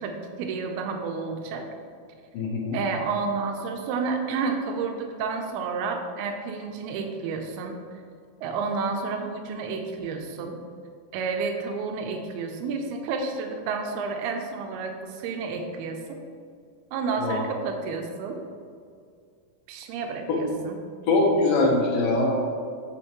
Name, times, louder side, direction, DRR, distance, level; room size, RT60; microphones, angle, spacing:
voice 1, 0.0-1.7 2.7-7.8 8.4-10.6 11.1-16.2 16.9-18.4 19.7-20.8, right 4 dB, 90° right, 4 dB, 2.6 m, -30 dB
voice 2, 2.3-2.8 17.2-17.4 20.3-20.4 21.1-22.3, left 2 dB, 75° left, -1 dB, 2.5 m, -22 dB
8.5 x 7.1 x 3.0 m, 2.2 s
omnidirectional pair, 4.4 m